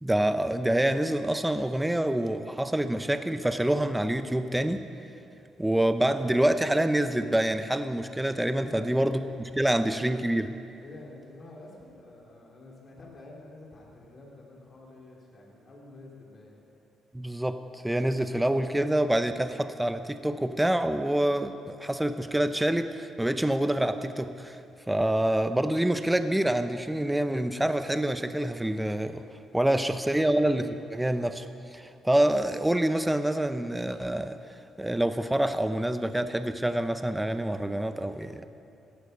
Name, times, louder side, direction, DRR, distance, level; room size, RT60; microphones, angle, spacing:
voice 1, 0.0-4.8 5.6-10.5 17.1-24.6 24.9-29.2 29.5-38.4, right 1 dB, 10° right, 10 dB, 0.7 m, -26 dB
voice 2, 8.6-8.9 9.5-9.9 10.8-16.6 29.5-29.8 30.1-30.4, left 2 dB, 45° left, -2 dB, 4.2 m, -48 dB
17.0 x 14.0 x 5.5 m, 2.7 s
cardioid pair, 90°, 0 cm